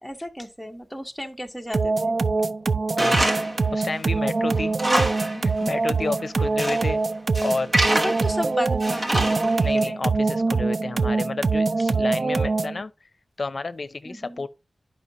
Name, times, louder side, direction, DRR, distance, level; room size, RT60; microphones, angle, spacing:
voice 1, 0.0-2.2 7.9-10.0 14.0-14.4, left 1 dB, ahead, 1.0 m, -33 dB
sound 1, 1.7-12.8, right 3 dB, 65° right, 0.3 m, -24 dB
Tools, 3.0-3.6 4.0-4.1 4.6-5.4 5.7-5.8 6.4-6.9 7.3-8.3 8.8-9.7, right 1 dB, 45° right, 1.1 m, -25 dB
voice 2, 3.7-4.8 5.3-7.0 7.4-7.7 9.6-12.9 13.4-14.5, left 3 dB, 55° left, 0.6 m, -31 dB
11.0 x 5.4 x 2.6 m
wide cardioid pair, 90°, 0 cm